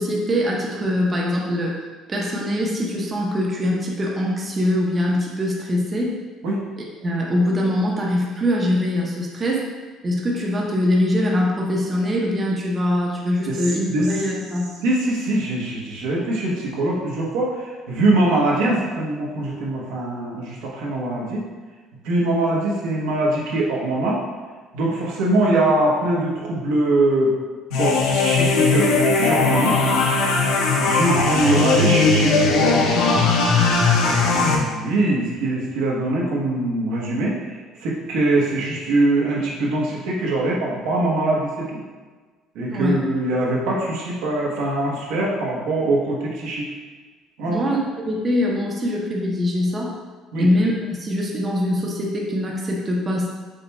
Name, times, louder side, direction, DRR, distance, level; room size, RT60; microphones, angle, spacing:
voice 1, 0.0-1.8 2.1-6.1 7.0-9.7 10.0-14.7 42.7-43.0 47.5-47.8 48.1-49.9 50.4-53.3, left 1 dB, 20° right, -2 dB, 0.6 m, -22 dB
voice 2, 14.8-21.4 22.0-24.2 24.7-27.4 27.7-29.8 30.8-33.2 34.0-37.4 37.8-41.8 42.5-46.7 47.4-47.6 50.3-50.5, right 2 dB, 90° right, -4 dB, 1.1 m, -22 dB
sound 1, 27.7-34.5, left 3 dB, 75° left, 0.6 m, -18 dB
5.1 x 2.3 x 4.1 m, 1.4 s
cardioid pair, 145°, 0 cm